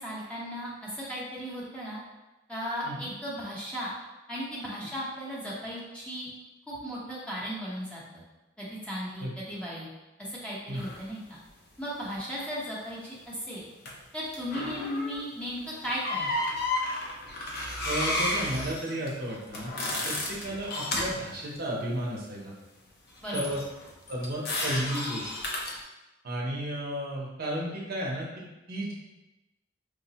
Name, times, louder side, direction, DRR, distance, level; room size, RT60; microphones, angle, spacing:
voice 1, 0.0-2.0 2.5-3.9 4.3-6.3 6.7-8.2 8.6-9.9 10.2-11.4 11.8-13.7 14.1-16.3 23.2-23.4, equal, 5° left, -7 dB, 0.9 m, -36 dB
voice 2, 2.8-3.1 9.2-9.3 10.7-10.9 17.8-19.7 20.0-22.5 23.3-23.6 24.1-25.3 26.2-28.9, right 1 dB, 55° right, -3 dB, 0.7 m, -33 dB
sound 1, 10.7-11.0 13.9-14.0 14.3-15.3 15.8-21.2 23.3-25.8, left 1 dB, 60° left, 0.6 m, -32 dB
4.8 x 2.1 x 2.8 m, 1.0 s
head